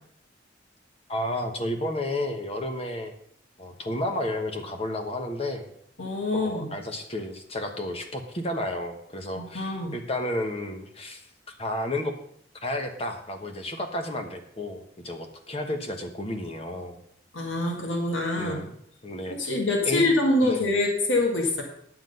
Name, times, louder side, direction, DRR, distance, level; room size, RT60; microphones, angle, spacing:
voice 1, 1.1-3.1 3.6-5.7 6.3-11.2 11.6-12.1 12.6-17.0 18.4-18.8 19.0-19.4 19.8-20.1 20.4-20.8, left 1 dB, 30° left, 4 dB, 1.1 m, -32 dB
voice 2, 6.0-6.7 9.4-10.0 17.3-18.6 19.3-21.6, left 2 dB, 85° left, 1 dB, 2.0 m, -25 dB
9.9 x 7.9 x 5.4 m, 0.68 s
head